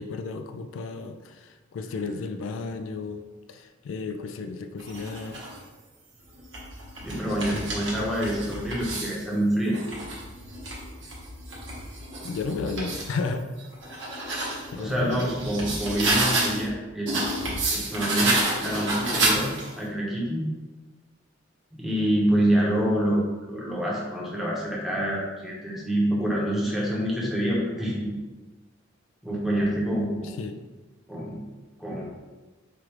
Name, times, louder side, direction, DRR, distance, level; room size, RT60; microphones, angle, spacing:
voice 1, 0.0-3.2 3.5-5.4 7.5-7.6 8.2-8.3 12.2-13.5 14.3-15.3 30.2-30.6, left 4 dB, 90° left, 7 dB, 0.3 m, -33 dB
sound 1, 4.8-5.6 6.3-9.2 9.7-13.1 13.6-16.7 17.1-19.8, right 2 dB, 65° right, 1.0 m, -30 dB
voice 2, 7.0-9.8 14.8-17.5 17.7-19.5 19.8-20.4 21.7-28.1 29.2-30.3 31.1-31.4 31.8-32.0, right 1 dB, ahead, -5 dB, 0.8 m, -26 dB
4.7 x 2.4 x 3.0 m, 1.2 s
head